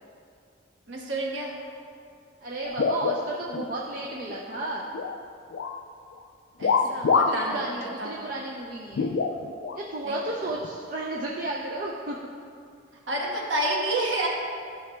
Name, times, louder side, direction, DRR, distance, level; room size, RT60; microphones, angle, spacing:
voice 1, 0.9-1.5 6.6-7.6 8.0-8.2 10.0-10.2 13.1-14.3, right 1 dB, 85° right, -3 dB, 1.2 m, -29 dB
voice 2, 2.4-4.9 6.8-9.1 9.7-12.2, right 2 dB, 50° right, -2 dB, 0.5 m, -33 dB
sound 1, 2.7-3.7 4.1-5.2 5.5-5.8 6.6-7.5 7.8-7.9 8.9-9.8 10.6-10.7 11.7-11.9, left 5 dB, 80° left, 0.4 m, -26 dB
11.5 x 5.9 x 2.2 m, 2.4 s
head